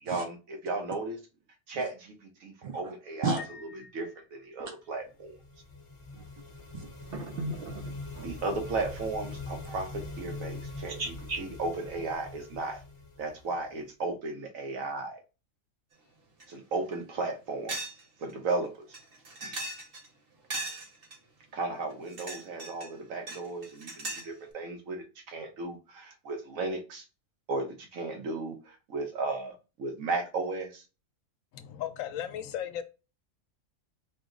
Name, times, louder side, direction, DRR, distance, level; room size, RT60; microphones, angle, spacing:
voice 1, 0.0-1.2 1.7-3.4 3.7-5.4 8.2-12.8 13.2-15.2 16.5-17.8 18.2-19.0 19.4-19.6 21.5-27.1 27.5-30.8, right 3 dB, 85° right, 1.2 m, -35 dB
Piano, 3.4-5.2, left 5 dB, 65° left, 0.9 m, -49 dB
sound 1, 5.1-13.9, left 3 dB, 25° left, 0.9 m, -43 dB
voice 2, 6.7-8.3 11.0-11.4, right 4 dB, 65° right, 0.6 m, -35 dB
sound 2, 16.4-16.5 16.9-17.0 17.7-18.0 18.3-18.4 18.9-20.1 20.5-21.2 21.9-22.9 23.3-24.3, right 2 dB, 45° right, 1.0 m, -38 dB
voice 3, 31.5-32.8, left 10 dB, 85° left, 1.0 m, -36 dB
4.6 x 2.0 x 3.7 m
omnidirectional pair, 1.4 m